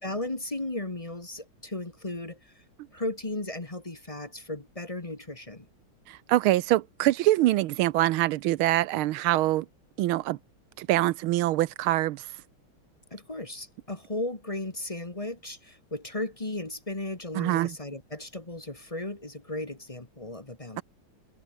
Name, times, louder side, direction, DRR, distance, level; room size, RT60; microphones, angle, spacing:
voice 1, 0.0-2.5 2.9-5.6 13.1-20.8, left 2 dB, 20° left, 1.5 m, -35 dB
voice 2, 6.1-9.7 10.0-10.4 10.8-12.3 17.3-17.8, right 15 dB, 85° right, 1.5 m, -24 dB
omnidirectional pair, 2.3 m